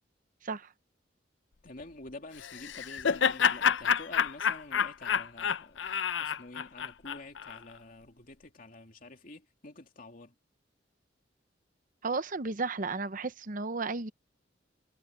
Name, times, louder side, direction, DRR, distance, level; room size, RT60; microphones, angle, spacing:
voice 1, 1.6-5.9 6.2-10.3, left 2 dB, 50° left, 2.9 m, -48 dB
Laughter, 2.4-7.6, left 7 dB, 80° left, 0.6 m, -29 dB
voice 2, 12.0-14.1, right 3 dB, 45° right, 0.8 m, -33 dB
head